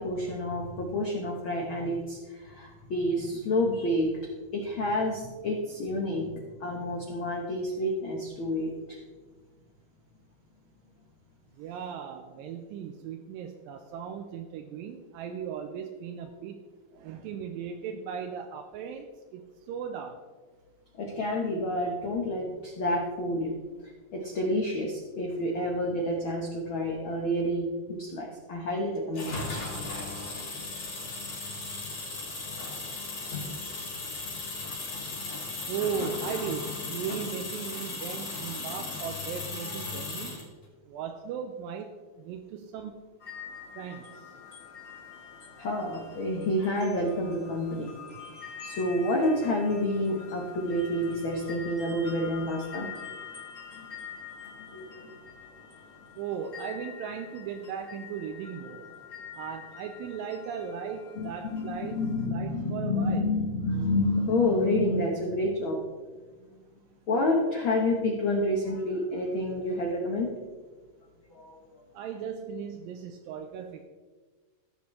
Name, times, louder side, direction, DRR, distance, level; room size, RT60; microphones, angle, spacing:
voice 1, 0.0-4.1 4.5-9.0 21.0-23.5 24.1-29.6 45.6-47.9 48.6-52.9 53.8-53.9 54.7-55.1 61.2-65.8 67.1-70.3 71.3-71.6, left 1 dB, 80° left, 0 dB, 1.1 m, -29 dB
voice 2, 11.6-16.6 16.9-20.2 35.7-40.4 40.9-43.0 43.8-44.3 56.2-58.9 59.3-63.3 71.9-73.8, right 7 dB, 85° right, 4 dB, 2.3 m, -37 dB
sound 1, 29.1-40.5, left 3 dB, 50° left, 3.3 m, -36 dB
sound 2, 43.2-62.3, left 6 dB, 30° left, 1.4 m, -46 dB
16.0 x 7.1 x 3.2 m, 1.4 s
omnidirectional pair, 4.2 m